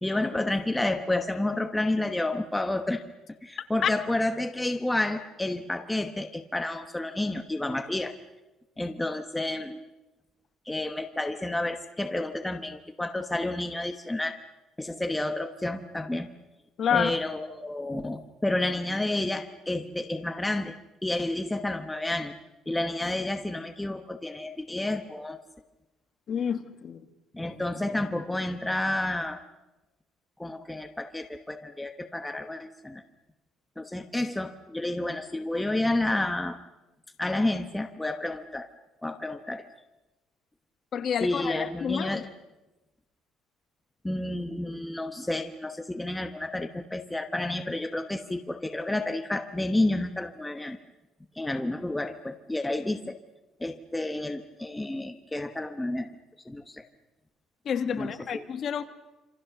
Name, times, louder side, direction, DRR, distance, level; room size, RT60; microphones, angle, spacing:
voice 1, 0.0-3.0 3.4-8.1 8.8-9.8 10.7-14.4 14.8-16.3 16.9-20.7 21.0-22.3 22.7-25.4 27.3-29.4 30.4-33.0 33.8-36.6 37.2-38.7 39.0-39.6 41.2-42.3 44.0-50.8 51.3-53.2 53.6-56.1 56.4-56.8 57.9-58.5, left 2 dB, 5° left, 6 dB, 1.0 m, -30 dB
voice 2, 16.8-17.2 26.3-27.0 40.9-42.2 57.6-58.8, left 8 dB, 40° left, 8 dB, 1.6 m, -28 dB
27.0 x 27.0 x 6.8 m, 1.1 s
cardioid pair, 160°, 0 cm